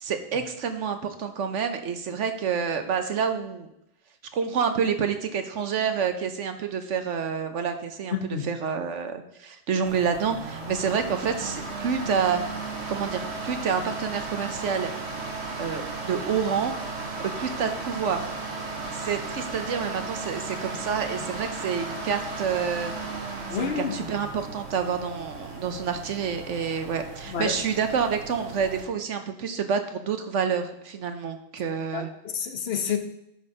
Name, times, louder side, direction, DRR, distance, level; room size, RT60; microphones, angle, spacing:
voice 1, 0.0-3.7 4.3-8.2 8.4-12.4 12.9-14.9 15.6-16.7 17.2-18.3 18.9-22.9 23.5-32.1, right 6 dB, 80° right, 7 dB, 1.3 m, -28 dB
voice 2, 8.1-8.5 23.5-24.0 27.3-27.5 31.9-33.0, left 7 dB, 60° left, 8 dB, 1.1 m, -29 dB
sound 1, 9.9-28.8, right 3 dB, 60° right, 1.5 m, -35 dB
11.5 x 4.3 x 4.9 m, 0.81 s
omnidirectional pair, 1.2 m